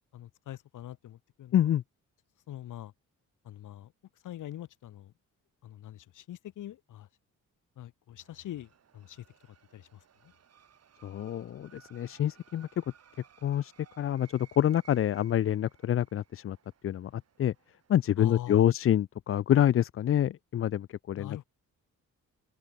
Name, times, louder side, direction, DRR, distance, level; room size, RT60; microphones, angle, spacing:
voice 1, 0.1-1.7 2.5-2.9 3.4-3.9 4.2-5.1 5.6-7.1 7.8-9.2 9.7-10.3 18.2-18.7 21.1-21.4, left 12 dB, 85° left, 2.1 m, -43 dB
voice 2, 1.5-1.8 11.0-12.8 13.4-16.6 16.8-17.5 17.9-21.4, left 11 dB, 45° left, 0.5 m, -27 dB
sound 1, 8.2-18.1, right 8 dB, 55° right, 5.3 m, -61 dB
open air
cardioid pair, 120°, 30 cm